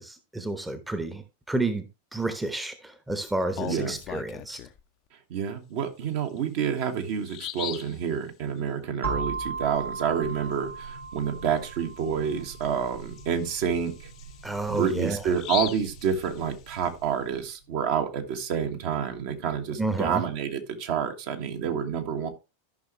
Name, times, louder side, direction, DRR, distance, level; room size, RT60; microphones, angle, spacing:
voice 1, 0.0-1.9 2.1-4.6 14.4-15.3 19.8-20.2, right 2 dB, 5° right, 9 dB, 1.0 m, -30 dB
Bird vocalization bird call bird song, 3.3-4.8 6.3-6.4 6.8-6.9 7.3-8.0 11.4-11.6 12.0-12.1 12.6-16.8, left 14 dB, 40° left, 0.7 m, -38 dB
voice 2, 3.6-4.0 5.3-14.0 14.7-22.3, right 7 dB, 50° right, 4 dB, 1.5 m, -28 dB
sound 1, 9.0-16.9, right 4 dB, 85° right, 3.0 m, -38 dB
13.5 x 5.8 x 3.0 m, 0.28 s
figure-of-eight pair, 90°, 0 cm